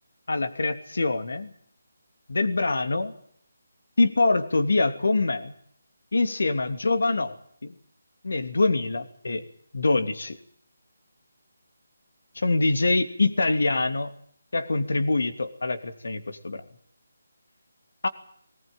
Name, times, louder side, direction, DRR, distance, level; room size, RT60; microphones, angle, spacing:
voice 1, 0.3-1.5 2.3-3.1 4.0-5.5 6.1-7.4 7.6-7.7 8.2-9.5 9.7-10.4 12.3-14.1 14.5-16.6 18.0-18.1, left 3 dB, 75° left, 9 dB, 3.0 m, -24 dB
20.5 x 19.0 x 9.2 m, 0.63 s
figure-of-eight pair, 160°, 0 cm